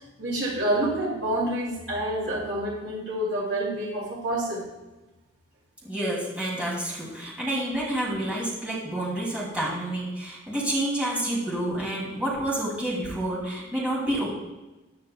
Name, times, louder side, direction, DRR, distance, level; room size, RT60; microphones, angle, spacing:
voice 1, 0.2-4.6, right 1 dB, 65° right, -3 dB, 2.7 m, -28 dB
voice 2, 5.8-14.3, right 1 dB, 5° right, -6 dB, 2.8 m, -29 dB
14.0 x 10.0 x 2.3 m, 1.1 s
head